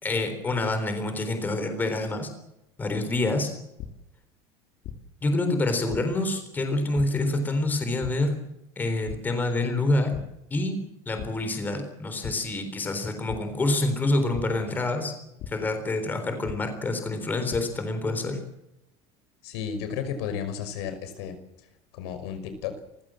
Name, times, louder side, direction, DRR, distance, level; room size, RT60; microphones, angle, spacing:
voice 1, 0.0-2.3 2.8-3.5 5.2-8.3 8.8-10.1 10.5-10.8 11.1-15.1 15.5-18.4, left 2 dB, 15° left, 7 dB, 3.8 m, -27 dB
sound 1, 3.8-3.9 4.8-5.0 5.9-6.0 6.9-7.0 8.0-8.1 9.1-9.2 9.6-9.8 10.1-10.2 11.2-11.3 12.2-12.3 13.3-13.4 14.3-14.4 15.4-15.5 16.5-16.6 17.2-17.6, left 11 dB, 40° left, 2.8 m, -36 dB
voice 2, 19.4-21.4 21.9-22.8, left 7 dB, 75° left, 9 dB, 5.7 m, -33 dB
29.5 x 15.5 x 7.6 m, 0.89 s
cardioid pair, 180°, 14 cm